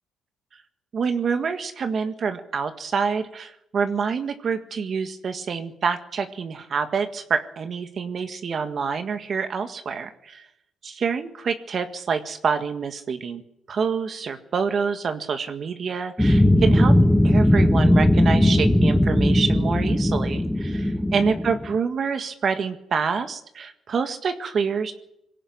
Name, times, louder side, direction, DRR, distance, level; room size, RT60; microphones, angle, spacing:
voice 1, 0.9-10.5 10.8-13.4 13.7-16.9 17.2-24.9, right 5 dB, 50° right, 8 dB, 1.7 m, -27 dB
sound 1, 16.2-21.7, left 1 dB, 5° left, 1.4 m, -18 dB
21.5 x 17.0 x 9.6 m, 0.81 s
cardioid pair, 90°, 0 cm